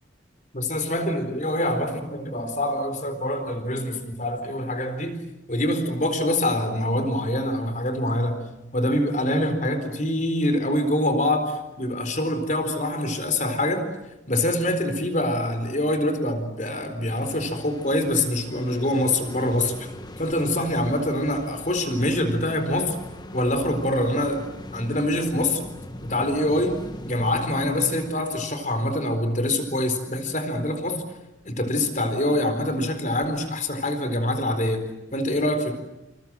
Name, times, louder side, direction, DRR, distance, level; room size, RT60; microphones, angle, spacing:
voice 1, 0.5-5.2 5.5-8.4 8.7-13.9 14.3-19.9 20.2-23.0 23.3-25.7 26.0-26.8 27.0-31.0 31.4-35.7, left 1 dB, 40° left, 9 dB, 4.2 m, -25 dB
sound 1, 17.1-28.1, left 1 dB, 25° left, 1.6 m, -40 dB
28.0 x 27.5 x 7.6 m, 0.95 s
head